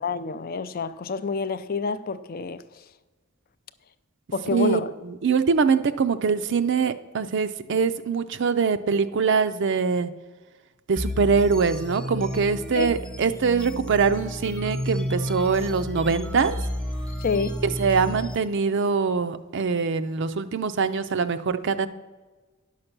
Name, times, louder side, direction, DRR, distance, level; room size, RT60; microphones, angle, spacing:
voice 1, 0.0-2.8 4.3-4.9 12.7-12.9 17.2-17.6, left 4 dB, 45° left, 0.4 m, -28 dB
voice 2, 4.5-10.1 10.9-16.6 17.6-21.9, right 5 dB, 55° right, 0.5 m, -23 dB
sound 1, 11.0-18.4, left 1 dB, 5° left, 0.8 m, -32 dB
10.5 x 6.6 x 6.0 m
head